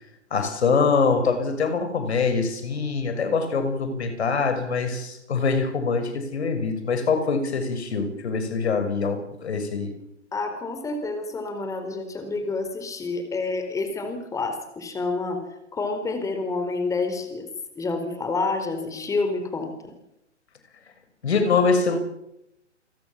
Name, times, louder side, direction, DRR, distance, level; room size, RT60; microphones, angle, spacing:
voice 1, 0.3-9.9 21.2-22.0, left 4 dB, 60° left, 9 dB, 6.3 m, -24 dB
voice 2, 10.3-15.4 15.7-17.5 17.8-19.9, left 3 dB, 10° left, 7 dB, 4.2 m, -28 dB
30.0 x 22.5 x 7.3 m, 0.85 s
figure-of-eight pair, 130°, 36 cm